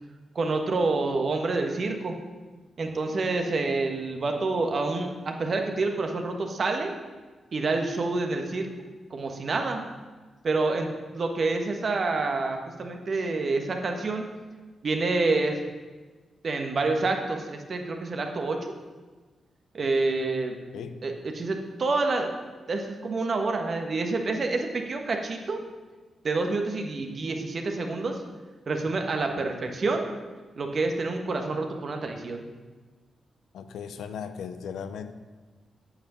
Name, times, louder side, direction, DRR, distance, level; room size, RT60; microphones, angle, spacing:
voice 1, 0.3-2.2 2.8-6.9 7.5-8.7 9.1-9.8 10.4-14.3 14.8-15.6 16.4-18.7 19.7-20.6 21.0-22.3 22.7-25.6 26.2-28.2 28.7-30.1 30.6-32.4, right 3 dB, 55° right, 4 dB, 1.4 m, -28 dB
voice 2, 33.5-35.1, left 7 dB, 85° left, 10 dB, 0.6 m, -37 dB
8.7 x 5.9 x 6.9 m, 1.3 s
cardioid pair, 55°, 0 cm